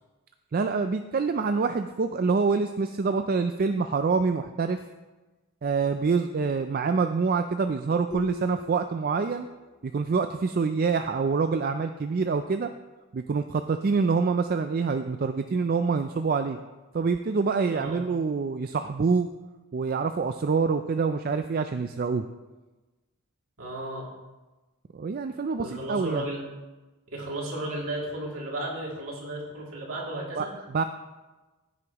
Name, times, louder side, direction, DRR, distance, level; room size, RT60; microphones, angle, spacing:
voice 1, 0.5-4.8 5.6-9.5 9.8-12.7 13.1-16.6 16.9-19.3 19.7-22.2 24.9-26.2 30.4-30.8, right 4 dB, 40° right, 8 dB, 0.4 m, -26 dB
sound 1, 8.1-9.8, left 4 dB, 80° left, 3.3 m, -41 dB
voice 2, 17.7-18.0 23.6-24.1 25.6-26.4 27.1-30.6, right 1 dB, 65° right, -3 dB, 2.7 m, -34 dB
14.5 x 9.6 x 3.0 m, 1.2 s
head